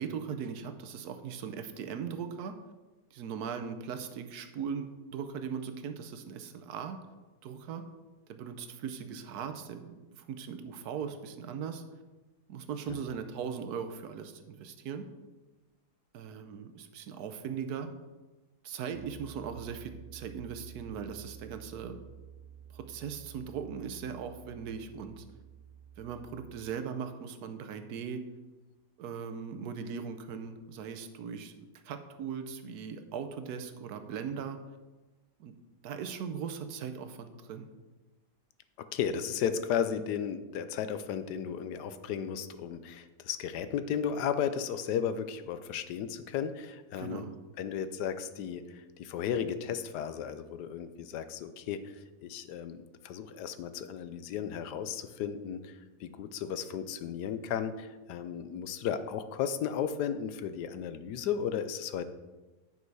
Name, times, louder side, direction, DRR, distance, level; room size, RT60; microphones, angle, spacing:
voice 1, 0.0-2.5 3.1-7.0 7.4-7.8 8.3-11.8 12.5-15.1 16.1-17.9 18.6-22.0 22.7-25.2 26.0-28.2 29.0-31.5 31.8-34.6 35.4-35.5 35.8-37.7 47.0-47.3, right 7 dB, 75° right, 8 dB, 1.2 m, -39 dB
sound 1, 18.9-26.6, right 8 dB, 15° left, 2.0 m, -51 dB
voice 2, 38.8-47.3 47.6-62.0, left 8 dB, 90° left, 11 dB, 1.2 m, -34 dB
9.4 x 5.5 x 4.7 m, 1.2 s
omnidirectional pair, 1.7 m